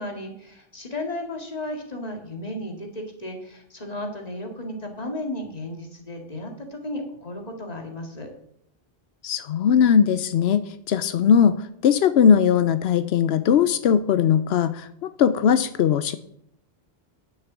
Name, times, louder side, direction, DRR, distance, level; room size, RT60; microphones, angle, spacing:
voice 1, 0.0-8.3, left 1 dB, 40° left, 3 dB, 2.2 m, -34 dB
voice 2, 9.2-16.2, left 7 dB, 90° left, 13 dB, 0.9 m, -19 dB
10.5 x 6.9 x 7.2 m, 0.73 s
omnidirectional pair, 1.0 m